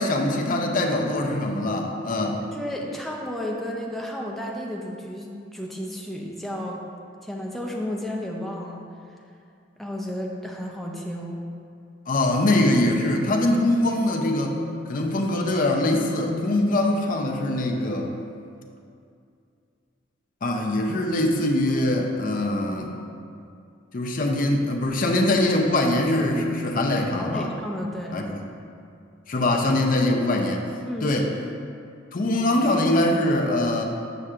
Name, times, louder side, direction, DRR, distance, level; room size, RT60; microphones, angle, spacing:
voice 1, 0.0-2.4 12.1-14.6 14.9-18.1 20.4-22.9 23.9-27.5 28.1-28.3 29.3-30.7 31.0-31.3 32.1-33.8, left 1 dB, 45° left, 1 dB, 0.6 m, -23 dB
voice 2, 2.5-6.8 7.2-8.8 9.8-11.4 27.2-28.2 30.9-31.2, left 1 dB, ahead, -2 dB, 0.5 m, -32 dB
7.7 x 5.5 x 2.4 m, 2.4 s
head